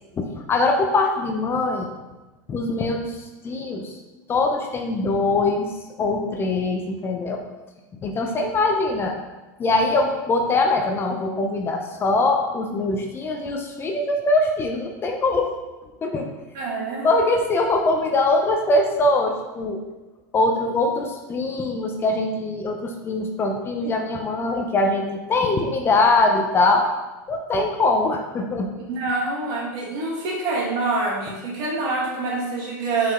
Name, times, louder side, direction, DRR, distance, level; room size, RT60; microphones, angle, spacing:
voice 1, 0.2-1.9 2.5-4.0 4.3-5.7 6.0-7.4 8.0-9.1 9.6-15.5 16.0-16.3 17.0-19.8 20.3-26.8 27.3-28.7, left 2 dB, 25° left, 3 dB, 0.6 m, -22 dB
voice 2, 16.5-17.1 28.9-33.1, right 3 dB, 55° right, -3 dB, 2.1 m, -26 dB
5.9 x 4.9 x 3.7 m, 1.1 s
supercardioid pair, 135°, 10 cm